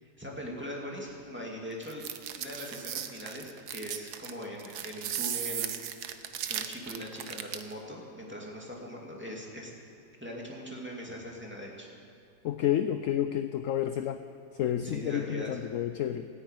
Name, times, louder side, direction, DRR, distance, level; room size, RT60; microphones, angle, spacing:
voice 1, 0.0-2.0 2.4-6.0 6.5-9.7 10.2-11.9 14.8-15.5, equal, 5° right, -2 dB, 2.3 m, -41 dB
sound 1, 1.8-7.7, right 9 dB, 75° right, 1.3 m, -36 dB
voice 2, 12.4-14.2 14.5-16.3, left 11 dB, 70° left, 10 dB, 0.8 m, -30 dB
14.0 x 9.8 x 9.1 m, 2.6 s
omnidirectional pair, 1.7 m